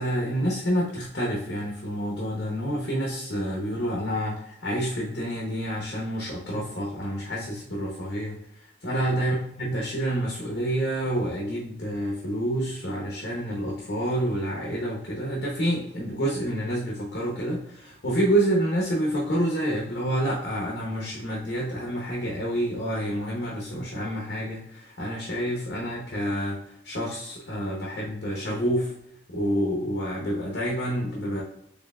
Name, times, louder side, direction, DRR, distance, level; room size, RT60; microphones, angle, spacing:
voice 1, 0.0-28.9 29.3-31.4, right 1 dB, 60° left, -3 dB, 0.9 m, -28 dB
4.3 x 3.2 x 2.4 m, 0.76 s
head